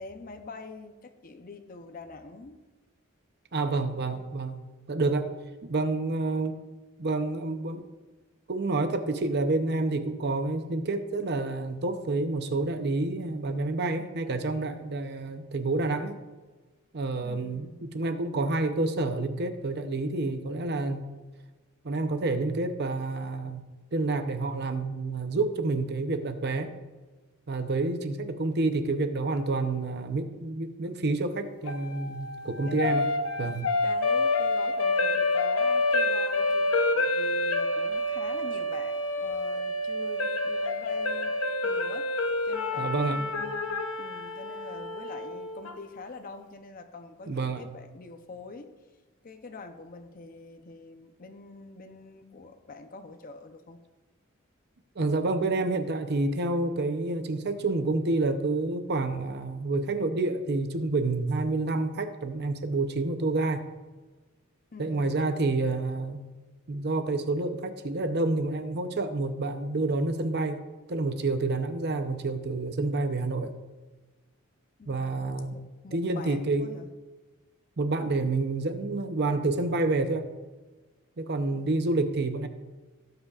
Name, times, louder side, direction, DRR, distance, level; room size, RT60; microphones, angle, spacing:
voice 1, 0.0-2.6 4.1-4.2 17.2-17.8 32.5-32.8 33.8-41.4 41.6-42.1 42.5-43.7 44.0-48.7 49.2-53.8 64.7-65.2 74.8-76.9 81.5-81.9, left 3 dB, 40° left, 6 dB, 0.7 m, -45 dB
voice 2, 3.5-4.6 4.9-5.3 5.6-6.5 7.0-7.8 8.5-16.2 16.9-21.1 21.8-23.6 23.9-26.7 27.5-33.1 33.4-33.7 42.8-43.3 47.3-47.6 55.0-63.6 64.8-66.2 66.7-70.6 70.9-73.5 74.9-75.6 75.9-76.7 77.8-80.2 81.2-82.5, right 2 dB, 50° right, 8 dB, 0.7 m, -28 dB
sound 1, 31.7-45.8, left 2 dB, 80° left, 0.7 m, -28 dB
17.0 x 7.9 x 2.4 m, 1.2 s
head